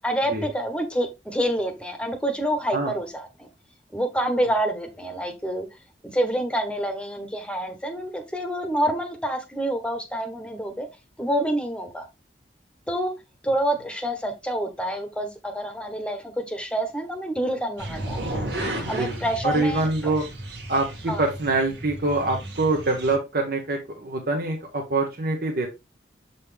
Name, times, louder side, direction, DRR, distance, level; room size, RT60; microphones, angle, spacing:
voice 1, 0.0-3.5 3.9-5.7 6.1-10.9 11.2-12.1 12.9-13.1 13.4-18.4 18.9-19.9 21.1-21.3, right 1 dB, 5° left, 1.0 m, -27 dB
sound 1, 17.8-23.2, right 1 dB, 80° right, 1.7 m, -34 dB
voice 2, 18.8-20.2 20.7-25.7, right 2 dB, 55° right, 1.0 m, -25 dB
7.0 x 4.1 x 3.3 m
head